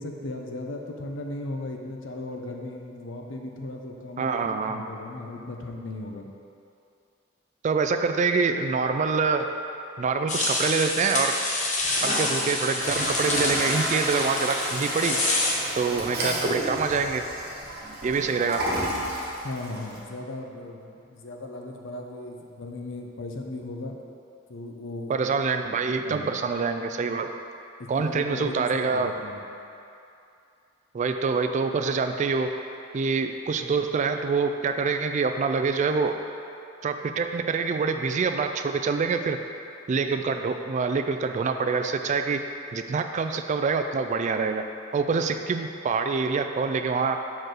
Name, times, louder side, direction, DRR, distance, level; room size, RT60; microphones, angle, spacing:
voice 1, 0.0-6.3 19.4-24.0 24.5-25.2 26.0-26.4 27.8-29.4, left 2 dB, 80° left, 2 dB, 0.7 m, -37 dB
voice 2, 4.2-4.9 7.6-9.5 10.0-11.4 12.0-15.2 15.8-17.3 18.0-18.7 25.1-27.4 27.9-29.1 30.9-32.6 32.9-36.2 36.8-39.4 39.9-42.4 42.7-44.6 44.9-47.3, right 4 dB, 40° right, 7 dB, 0.3 m, -26 dB
sound 1, 10.3-15.5, left 2 dB, 40° left, 0.9 m, -27 dB
Toilet flush, 11.8-20.0, equal, 55° right, 1.3 m, -32 dB
6.0 x 4.6 x 4.8 m, 2.6 s
head